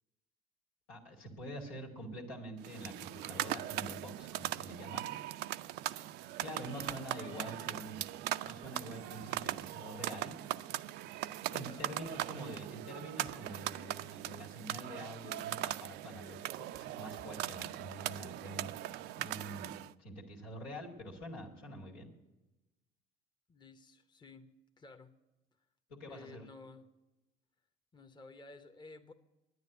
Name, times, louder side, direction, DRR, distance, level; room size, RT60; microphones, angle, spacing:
voice 1, 0.9-5.1 6.4-8.0 8.4-10.3 11.5-18.7 19.2-19.7 20.0-22.1 25.9-26.4, equal, 85° left, 0 dB, 2.3 m, -46 dB
sound 1, 2.6-19.9, right 14 dB, 65° right, 0.4 m, -40 dB
voice 2, 6.6-7.6 11.6-12.0 23.5-24.5 24.8-25.1 26.1-26.9 27.9-29.1, left 3 dB, 25° left, 6 dB, 0.9 m, -53 dB
9.8 x 9.4 x 8.2 m, 1.0 s
hypercardioid pair, 65°, 18 cm